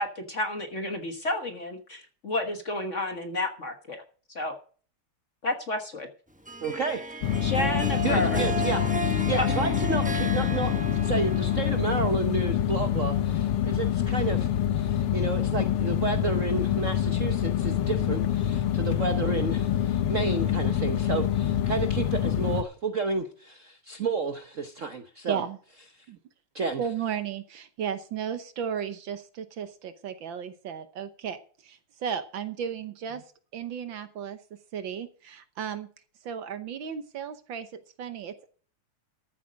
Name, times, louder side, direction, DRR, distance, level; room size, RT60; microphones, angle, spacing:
voice 1, 0.0-4.0 4.3-4.5 5.4-6.1 7.4-8.4, left 2 dB, 40° left, 5 dB, 1.4 m, -31 dB
Harp, 6.5-12.2, right 2 dB, 5° right, 0.7 m, -34 dB
voice 2, 6.6-7.1 8.0-25.4 26.5-26.8, right 4 dB, 50° right, 6 dB, 1.0 m, -31 dB
sound 1, 7.2-22.6, left 10 dB, 85° left, 1.8 m, -26 dB
voice 3, 25.3-25.6 26.1-26.2 26.8-33.2 33.5-34.4 34.7-35.9 36.2-38.5, right 8 dB, 65° right, 10 dB, 1.6 m, -34 dB
14.0 x 8.3 x 5.0 m, 0.42 s
omnidirectional pair, 2.4 m